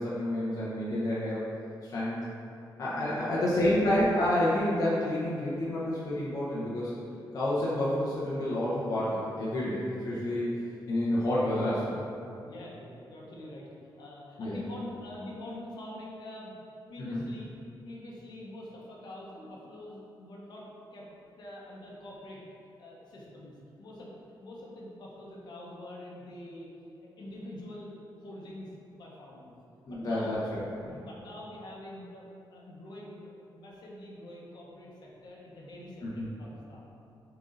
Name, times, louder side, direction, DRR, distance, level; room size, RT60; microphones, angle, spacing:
voice 1, 0.0-1.4 1.8-2.2 2.8-6.9 7.3-10.5 10.9-12.0 14.4-14.6 17.0-17.2 29.8-31.0 36.0-36.3, left 1 dB, 45° left, -8 dB, 0.9 m, -29 dB
voice 2, 3.0-3.3 12.4-16.6 16.9-17.5 17.8-20.7 20.9-21.1 21.4-22.4 22.8-24.1 24.4-26.7 27.0-27.9 28.2-29.6 29.9-30.3 30.8-36.9, left 1 dB, 60° left, -4 dB, 1.2 m, -45 dB
7.2 x 4.0 x 4.0 m, 2.6 s
wide cardioid pair, 180°, 8 cm